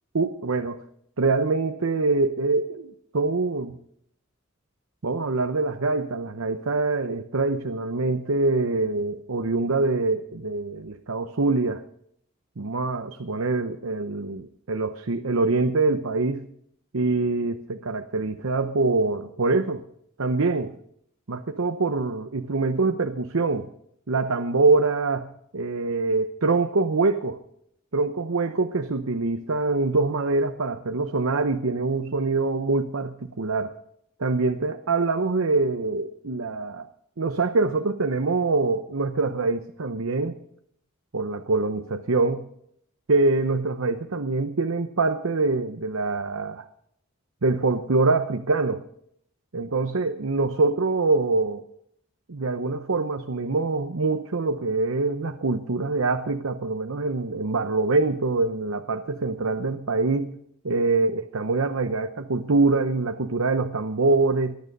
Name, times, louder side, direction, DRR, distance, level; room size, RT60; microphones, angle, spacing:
voice 1, 0.1-0.8 1.2-3.8 5.0-11.8 12.6-16.5 16.9-19.8 20.2-20.8 21.3-23.7 24.1-27.4 27.9-33.7 34.2-36.9 37.2-40.4 41.1-42.5 43.1-46.6 47.4-48.8 49.5-51.6 52.3-60.4 60.6-64.6, right 3 dB, 80° right, 6 dB, 0.8 m, -24 dB
19.0 x 11.5 x 5.4 m, 0.70 s
head